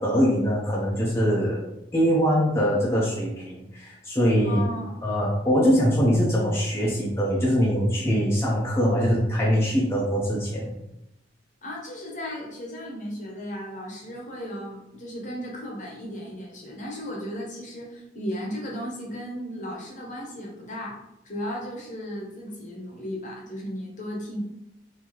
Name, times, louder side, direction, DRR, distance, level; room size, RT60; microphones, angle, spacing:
voice 1, 0.0-1.6 1.9-4.6 5.0-10.8, equal, 15° left, -5 dB, 0.6 m, -23 dB
voice 2, 4.4-5.0 11.6-24.4, equal, 45° left, -1 dB, 0.9 m, -35 dB
3.7 x 2.7 x 3.0 m, 0.88 s
head